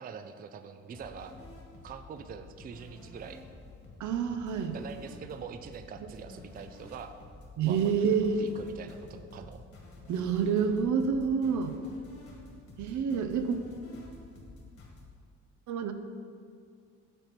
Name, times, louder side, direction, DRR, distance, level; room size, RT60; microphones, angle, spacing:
voice 1, 0.0-1.3 1.8-3.4 4.7-7.2 7.7-9.6, right 6 dB, 30° right, 9 dB, 0.4 m, -44 dB
sound 1, 0.9-15.0, left 2 dB, 45° left, 1.7 m, -50 dB
voice 2, 4.0-4.8 7.6-8.4 10.1-11.8 12.8-13.6 15.7-15.9, right 6 dB, 75° right, 7 dB, 0.6 m, -28 dB
6.7 x 4.2 x 6.0 m, 2.2 s
cardioid pair, 90°, 30 cm